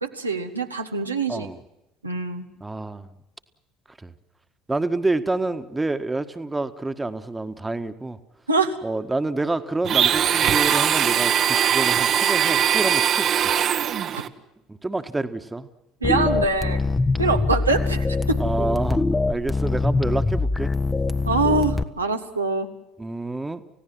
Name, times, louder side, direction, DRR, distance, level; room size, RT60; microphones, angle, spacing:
voice 1, 0.0-1.5 2.0-2.5 8.5-8.8 14.1-14.2 16.0-16.8 17.2-18.4 21.2-22.7, right 3 dB, 90° right, 3 dB, 1.4 m, -24 dB
voice 2, 1.3-1.6 2.6-3.2 4.0-4.1 4.7-8.2 8.8-13.5 14.7-15.7 18.4-20.7 23.0-23.6, right 2 dB, 15° right, 9 dB, 1.6 m, -28 dB
Domestic sounds home sounds, 9.8-14.3, right 9 dB, 45° right, 1.3 m, -21 dB
sound 1, 16.0-21.8, left 3 dB, 15° left, 1.2 m, -23 dB
29.5 x 16.5 x 7.6 m, 0.90 s
figure-of-eight pair, 60°, 0 cm